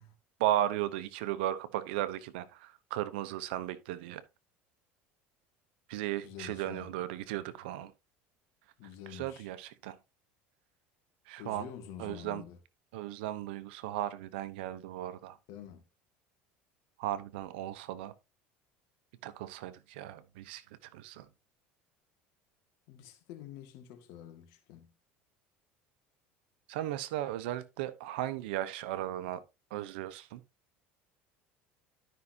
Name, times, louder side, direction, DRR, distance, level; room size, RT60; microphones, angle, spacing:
voice 1, 0.4-4.2 5.9-7.9 9.1-10.0 11.3-11.7 12.0-12.4 12.9-15.4 17.0-18.1 19.2-21.3 26.7-29.4 29.7-30.4, right 13 dB, 85° right, 0.9 m, -36 dB
voice 2, 6.2-6.9 8.8-9.5 11.4-12.6 15.5-15.8 22.9-24.9, left 9 dB, 70° left, 2.0 m, -47 dB
12.0 x 5.6 x 2.8 m
supercardioid pair, 100°, 5 cm